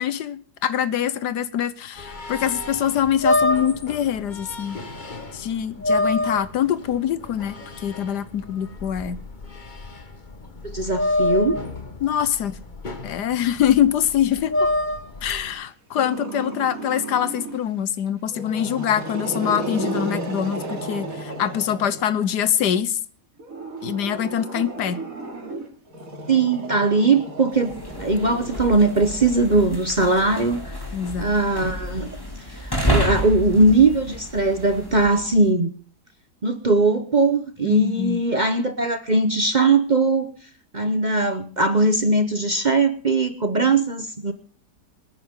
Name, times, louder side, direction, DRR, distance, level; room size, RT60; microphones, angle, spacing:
voice 1, 0.0-4.8 5.3-9.2 12.0-12.6 13.0-14.7 15.2-23.0 23.8-25.0 30.9-31.3 37.6-38.2, left 10 dB, 75° left, 15 dB, 1.5 m, -24 dB
sound 1, 2.0-15.5, left 2 dB, 30° left, 1.4 m, -27 dB
voice 2, 10.6-11.6 26.3-27.7 28.0-30.7 31.2-32.1 32.5-35.7 36.4-40.3 40.7-44.3, right 3 dB, 35° right, 9 dB, 0.8 m, -20 dB
Growling, 16.0-17.7 18.3-22.4 23.4-29.9, right 2 dB, 55° right, 3.0 m, -34 dB
sound 2, 27.6-35.4, equal, 15° left, 2.8 m, -30 dB
26.0 x 9.9 x 3.8 m, 0.42 s
omnidirectional pair, 1.8 m